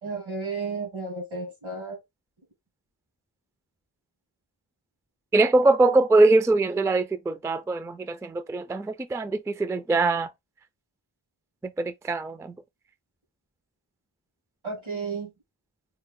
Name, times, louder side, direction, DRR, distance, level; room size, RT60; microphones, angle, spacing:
voice 1, 0.0-2.0 14.6-15.3, right 4 dB, 85° right, 2.2 m, -33 dB
voice 2, 5.3-10.3 11.8-12.5, right 2 dB, 5° right, 0.3 m, -22 dB
4.4 x 2.1 x 3.6 m
wide cardioid pair, 50°, 46 cm